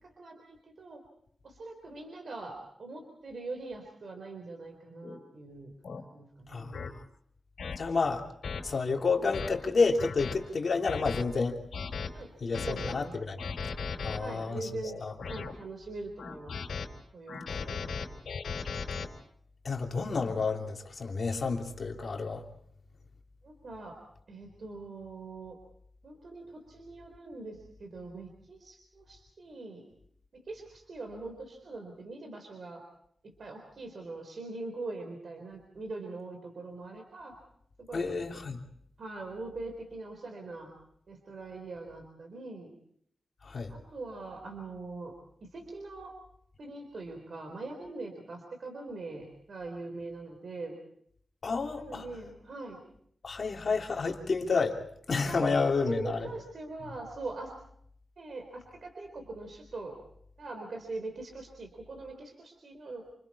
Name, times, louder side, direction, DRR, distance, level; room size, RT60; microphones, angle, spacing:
voice 1, 0.0-1.0 1.4-5.7 6.1-6.8 12.1-13.2 14.2-15.0 15.3-16.6 17.1-17.9 23.4-24.0 24.3-25.6 26.0-29.8 30.3-32.8 33.2-37.4 37.8-38.1 39.0-40.7 41.1-42.7 43.7-45.1 45.5-46.1 46.6-50.8 51.8-52.8 55.3-57.5 58.2-60.0 60.4-63.0, right 3 dB, 50° right, 3 dB, 3.9 m, -42 dB
sound 1, 5.0-5.2 5.8-6.0 6.7-6.9 7.6-7.8 8.4-8.6 9.1-9.5 10.0-10.4 10.9-11.2 11.7-12.1 12.5-12.9 13.4-14.2 14.8-15.5 16.2-16.9 17.3-19.1, left 5 dB, 70° left, 3.5 m, -36 dB
voice 2, 6.5-6.9 7.8-8.3 8.6-11.6 12.4-13.4 14.0-15.1 19.6-22.4 37.9-38.6 43.4-43.7 51.4-52.1 53.2-54.8 55.1-56.3, left 4 dB, 45° left, 1 dB, 3.1 m, -30 dB
28.5 x 27.0 x 4.2 m, 0.68 s
wide cardioid pair, 170°, 0 cm